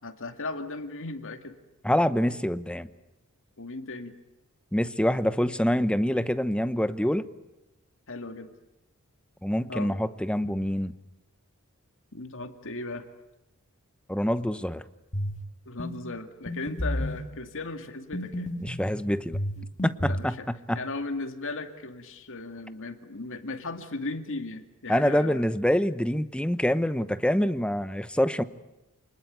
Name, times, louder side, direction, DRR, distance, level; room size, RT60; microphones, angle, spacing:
voice 1, 0.0-1.5 3.6-4.1 8.1-8.5 9.7-9.9 12.1-13.1 15.7-18.5 19.6-19.7 20.0-20.5 20.7-25.5, left 3 dB, 60° left, 7 dB, 2.3 m, -36 dB
voice 2, 1.8-2.9 4.7-7.3 9.4-10.9 14.1-14.8 18.6-19.4 19.8-20.8 24.9-28.4, equal, 5° left, 13 dB, 0.9 m, -26 dB
sound 1, 15.1-15.4 15.8-16.0 16.5-17.2 18.1-18.9 19.3-20.3, left 1 dB, 35° left, 2.3 m, -31 dB
29.0 x 20.5 x 9.4 m, 0.97 s
head